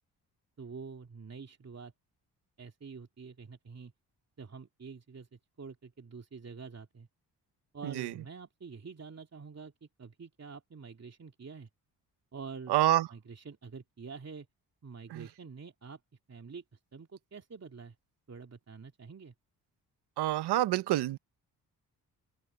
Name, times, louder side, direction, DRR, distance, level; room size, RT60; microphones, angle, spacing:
voice 1, 0.6-1.9 2.6-3.9 4.4-7.1 7.7-11.7 12.3-12.7 13.1-14.5 14.8-16.0 16.3-18.0 18.3-19.3, right 5 dB, 40° right, 2.8 m, -47 dB
voice 2, 12.7-13.1 15.1-15.3 20.2-21.2, right 14 dB, 80° right, 1.1 m, -27 dB
open air
supercardioid pair, 50°, 40 cm